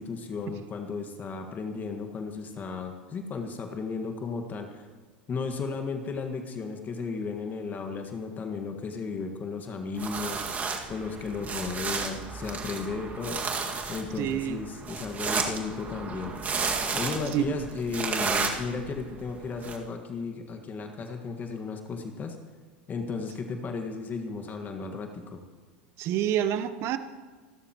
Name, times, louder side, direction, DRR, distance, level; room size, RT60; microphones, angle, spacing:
voice 1, 0.0-4.9 5.3-10.6 10.9-13.4 13.9-16.3 16.9-22.4 22.9-25.4, left 4 dB, 30° left, 5 dB, 1.7 m, -34 dB
sound 1, 10.0-19.8, right 5 dB, 25° right, 2.0 m, -33 dB
voice 2, 14.2-14.6 17.3-17.5 26.0-27.0, right 11 dB, 45° right, 12 dB, 0.9 m, -27 dB
27.5 x 13.0 x 3.0 m, 1.4 s
hypercardioid pair, 85°, 6 cm